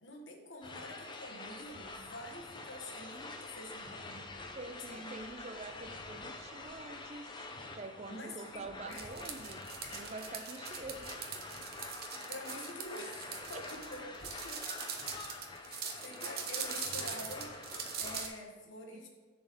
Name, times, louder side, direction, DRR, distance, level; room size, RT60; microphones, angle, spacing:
voice 1, 0.0-4.3 4.9-5.1 8.1-9.1 9.8-10.0 12.3-14.6 15.6-19.1, left 1 dB, 65° left, 2 dB, 1.2 m, -47 dB
sound 1, 0.6-18.3, left 3 dB, 20° left, 0.5 m, -47 dB
voice 2, 4.6-7.4 7.7-9.7 9.9-11.3 11.6-11.7 12.2-12.3 13.5-13.6 18.9-19.1, right 3 dB, 30° right, 8 dB, 0.5 m, -46 dB
sound 2, 8.9-18.3, right 7 dB, 50° right, 0.8 m, -42 dB
6.9 x 4.2 x 6.4 m, 1.3 s
head